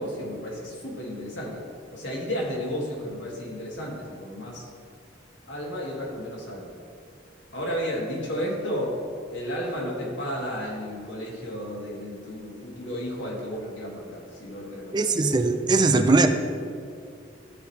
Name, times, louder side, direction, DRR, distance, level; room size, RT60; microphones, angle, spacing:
voice 1, 0.0-1.7 1.9-4.7 5.5-6.7 7.5-9.0 9.3-15.1, equal, 80° left, -3 dB, 2.1 m, -33 dB
voice 2, 14.9-16.3, right 3 dB, 25° right, 7 dB, 0.4 m, -20 dB
14.0 x 5.0 x 3.3 m, 2.3 s
head